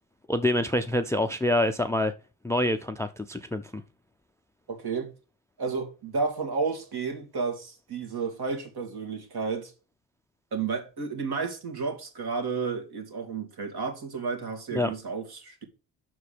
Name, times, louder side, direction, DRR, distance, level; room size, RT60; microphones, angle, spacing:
voice 1, 0.3-2.1 2.4-3.8 14.7-14.9, left 1 dB, 5° left, 0.5 m, -26 dB
voice 2, 4.7-5.1 5.6-9.7 10.5-15.6, right 4 dB, 50° right, 2.4 m, -32 dB
6.1 x 4.7 x 6.7 m
supercardioid pair, 75°, 48 cm